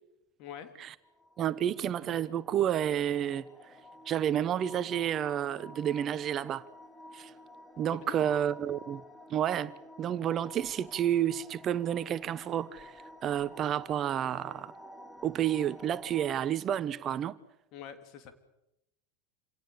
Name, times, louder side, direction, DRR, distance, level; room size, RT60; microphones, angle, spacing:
voice 1, 0.4-0.7 7.9-8.3 17.7-18.3, left 8 dB, 50° left, 3.2 m, -45 dB
sound 1, 1.0-16.4, left 1 dB, 5° left, 2.1 m, -51 dB
voice 2, 1.4-3.4 4.1-6.6 7.1-7.3 7.8-14.7 15.2-17.4, right 10 dB, 35° right, 1.0 m, -30 dB
27.0 x 18.0 x 8.4 m
hypercardioid pair, 85°, 0 cm